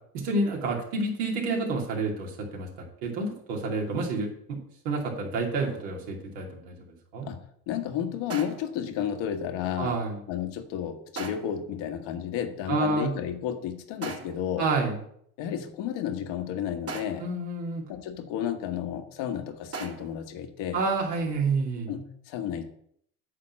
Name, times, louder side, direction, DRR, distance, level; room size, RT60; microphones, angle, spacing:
voice 1, 0.1-2.7 3.0-4.6 4.8-7.3 9.8-10.2 12.7-13.1 14.6-15.0 17.2-17.8 20.7-21.9, right 3 dB, 80° right, -1 dB, 2.8 m, -29 dB
sound 1, 5.6-6.0 8.3-8.9 11.2-11.7 14.0-14.6 16.9-17.4 19.7-20.3, right 4 dB, 30° right, 1.6 m, -39 dB
voice 2, 7.3-10.0 10.3-14.7 15.4-17.3 17.9-20.8 21.9-22.8, left 9 dB, 65° left, 5 dB, 1.4 m, -32 dB
9.4 x 3.9 x 7.3 m, 0.67 s
supercardioid pair, 85°, 45 cm